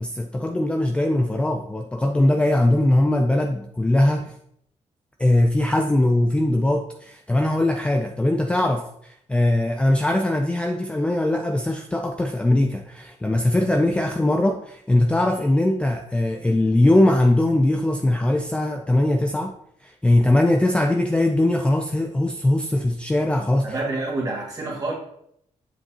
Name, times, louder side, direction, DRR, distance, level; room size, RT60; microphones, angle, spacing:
voice 1, 0.0-4.3 5.2-19.5 19.8-23.7, left 1 dB, 10° left, 4 dB, 0.4 m, -21 dB
voice 2, 23.6-24.9, right 2 dB, 30° right, -2 dB, 2.0 m, -27 dB
8.0 x 7.2 x 2.9 m, 0.72 s
wide cardioid pair, 170°, 12 cm